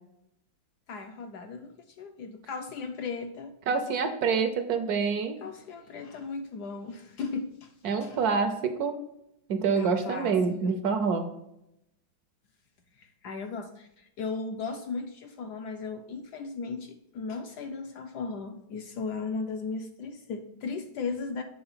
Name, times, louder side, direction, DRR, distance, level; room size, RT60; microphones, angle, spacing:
voice 1, 0.9-3.6 5.4-7.7 8.0-8.3 9.7-10.4 10.6-10.8 13.0-21.4, left 4 dB, 70° left, 6 dB, 1.0 m, -36 dB
voice 2, 3.7-5.4 7.8-8.9 9.5-11.3, right 5 dB, 65° right, 7 dB, 1.0 m, -26 dB
7.8 x 3.6 x 5.5 m, 0.82 s
omnidirectional pair, 2.2 m